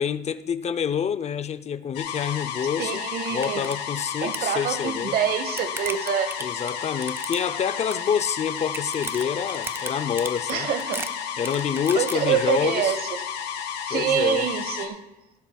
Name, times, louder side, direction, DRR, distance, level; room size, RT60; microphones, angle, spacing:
voice 1, 0.0-3.0 3.3-5.2 6.4-10.7 11.4-13.0 13.9-14.5, left 7 dB, 40° left, 0.6 m, -27 dB
sound 1, 1.9-14.9, left 8 dB, 80° left, 1.8 m, -32 dB
sound 2, 2.8-2.9 3.3-3.8 4.0-4.5 5.1-7.7 7.9-8.3 8.6-12.2, right 3 dB, 15° right, 0.5 m, -36 dB
voice 2, 2.8-3.6 4.2-6.4 10.5-11.1 11.9-13.1 13.8-15.0, right 9 dB, 65° right, 1.2 m, -26 dB
18.0 x 12.5 x 2.3 m
cardioid pair, 110°, 17 cm